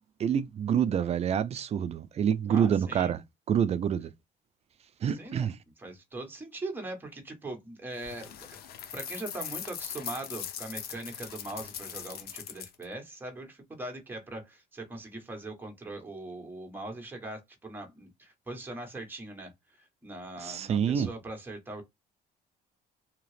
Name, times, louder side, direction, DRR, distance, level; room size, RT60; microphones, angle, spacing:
voice 1, 0.2-3.2 3.5-4.1 5.0-5.5 20.4-21.1, right 8 dB, 40° right, 0.4 m, -27 dB
voice 2, 2.5-3.1 5.0-5.5 5.8-8.4 8.9-21.8, right 2 dB, 10° right, 1.2 m, -41 dB
sound 1, 8.0-12.8, left 9 dB, 65° left, 0.7 m, -40 dB
2.8 x 2.4 x 3.2 m
cardioid pair, 110°, 17 cm